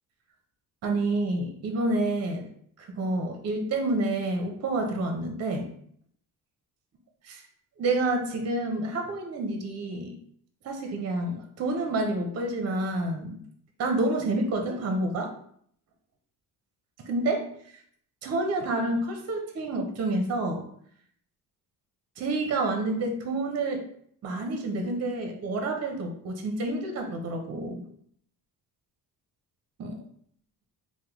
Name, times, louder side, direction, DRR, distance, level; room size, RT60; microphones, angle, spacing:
voice 1, 0.8-2.5 2.8-5.7 7.2-7.4 7.8-10.2 10.6-13.4 13.8-15.3 17.0-17.4 18.2-20.6 22.2-23.8 24.2-27.8 29.8-30.0, right 2 dB, 40° right, 4 dB, 0.6 m, -28 dB
3.4 x 2.1 x 3.0 m, 0.64 s
cardioid pair, 110°, 39 cm